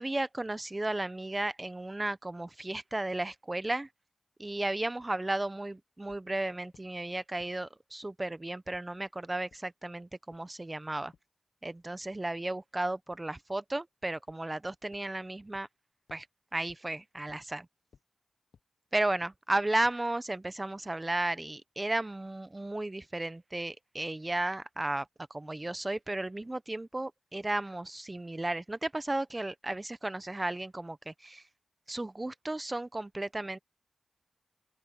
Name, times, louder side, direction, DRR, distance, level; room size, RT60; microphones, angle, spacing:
voice 1, 0.0-3.9 4.4-11.1 11.6-15.7 16.1-16.3 16.5-17.7 18.9-31.4 31.9-33.6, right 2 dB, 25° right, 0.9 m, -34 dB
sound 1, 6.1-6.2 6.7-6.8 7.4-7.5 8.0-8.1 8.7-8.8 9.5-9.6 10.3-10.4 11.1-11.2 13.1-13.2 14.3-14.4 14.9-15.0 15.5-15.6 16.1-16.2 16.7-16.8 17.3-17.4 17.9-18.0 18.5-18.6 19.2-19.3 19.8-19.9, left 6 dB, 80° left, 1.2 m, -59 dB
open air
cardioid pair, 60°, 0 cm